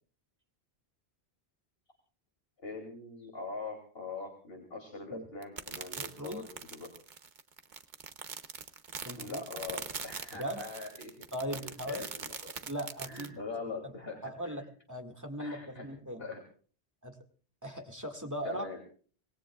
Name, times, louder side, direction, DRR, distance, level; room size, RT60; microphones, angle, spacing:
voice 1, 2.6-6.9 9.2-11.1 11.5-12.5 13.0-14.2 14.5-14.6 15.4-15.9 16.2-16.4 18.4-18.8, left 4 dB, 60° left, 2 dB, 3.2 m, -42 dB
sound 1, 5.4-13.3, right 5 dB, 45° right, 1.0 m, -42 dB
voice 2, 6.0-6.5 9.0-9.4 10.3-10.7 11.3-12.1 12.6-13.4 13.8-13.9 14.2-16.2 17.0-17.2 17.6-18.7, equal, 15° right, 5 dB, 2.0 m, -39 dB
26.0 x 19.5 x 2.4 m, 0.43 s
omnidirectional pair, 1.1 m